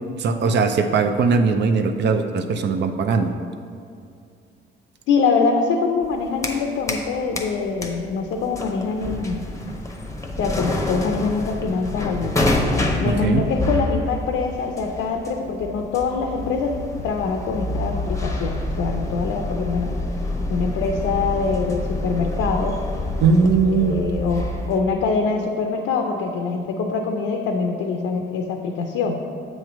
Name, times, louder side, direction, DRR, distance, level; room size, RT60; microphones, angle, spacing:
voice 1, 0.2-3.3 13.2-13.4 23.2-24.0, right 5 dB, 60° right, 8 dB, 0.5 m, -19 dB
voice 2, 5.1-9.4 10.4-12.4 13.0-20.0 20.5-22.8 23.6-29.2, left 4 dB, 85° left, 3 dB, 0.5 m, -24 dB
sound 1, 6.0-7.1 7.4-24.8, left 2 dB, 15° left, 0.7 m, -27 dB
7.7 x 3.1 x 5.9 m, 2.3 s
cardioid pair, 90°, 20 cm